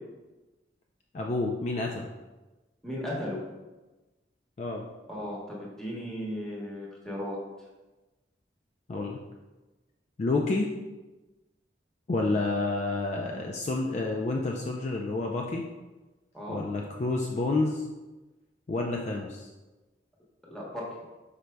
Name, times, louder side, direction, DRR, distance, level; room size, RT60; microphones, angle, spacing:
voice 1, 1.1-2.1 4.6-4.9 8.9-9.2 10.2-10.7 12.1-15.7 16.5-17.9 18.7-19.5, left 2 dB, 40° left, 1 dB, 0.3 m, -29 dB
voice 2, 2.8-3.4 5.1-7.4 16.3-16.6 20.4-20.8, equal, 5° left, -5 dB, 1.0 m, -36 dB
5.2 x 4.6 x 2.2 m, 1.1 s
head